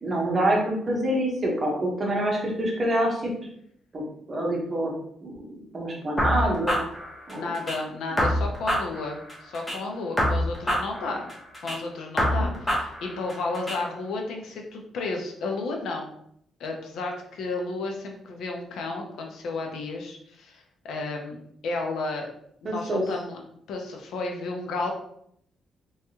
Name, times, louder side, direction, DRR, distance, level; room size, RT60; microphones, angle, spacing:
voice 1, 0.0-3.3 3.9-4.0 4.3-4.9 5.2-6.8 7.3-7.5 12.3-12.5 22.6-23.0, right 1 dB, 30° right, -1 dB, 1.0 m, -26 dB
sound 1, 6.2-7.8 8.2-9.8 10.2-11.8 12.2-13.8, equal, 15° left, 1.0 m, -26 dB
voice 2, 7.3-11.3 11.6-16.1 16.6-21.4 21.6-22.3 22.6-23.4 23.7-24.9, left 3 dB, 85° left, 2 dB, 0.7 m, -32 dB
3.4 x 3.1 x 2.9 m, 0.70 s
cardioid pair, 145°, 0 cm